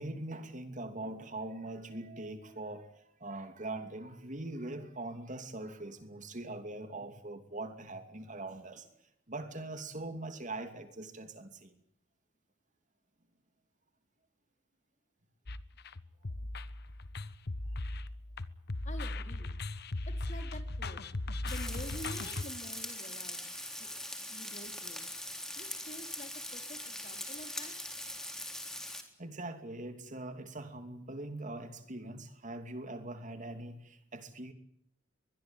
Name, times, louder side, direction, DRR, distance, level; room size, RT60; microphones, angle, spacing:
voice 1, 0.0-2.9 3.2-8.9 9.3-11.7 29.2-34.5, right 2 dB, 40° right, 2.9 m, -42 dB
sound 1, 15.5-22.4, left 2 dB, 55° left, 1.3 m, -38 dB
voice 2, 18.8-19.5 20.1-21.0 21.4-23.5 23.8-23.9 24.3-25.0 25.6-27.7, left 1 dB, 40° left, 4.0 m, -48 dB
Frying (food), 21.5-29.0, left 1 dB, 5° left, 3.6 m, -42 dB
23.5 x 21.5 x 9.2 m
head